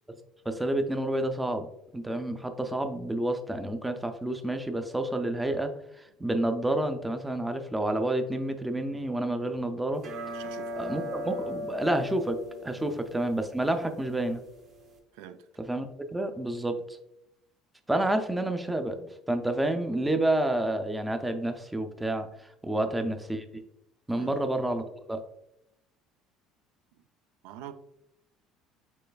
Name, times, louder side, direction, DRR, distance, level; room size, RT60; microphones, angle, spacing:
voice 1, 0.5-1.7 1.9-10.0 10.8-14.4 15.7-16.8 17.9-23.6 24.1-24.8 25.1-25.2, right 1 dB, 5° right, 7 dB, 0.3 m, -29 dB
sound 1, 10.0-15.0, equal, 40° right, 0.7 m, -39 dB
voice 2, 10.3-10.8 12.8-12.9 15.1-15.5 22.7-23.1 24.2-24.4 26.9-27.0 27.4-27.7, right 10 dB, 90° right, 11 dB, 0.4 m, -46 dB
5.4 x 4.0 x 2.2 m, 0.81 s
cardioid pair, 165°, 0 cm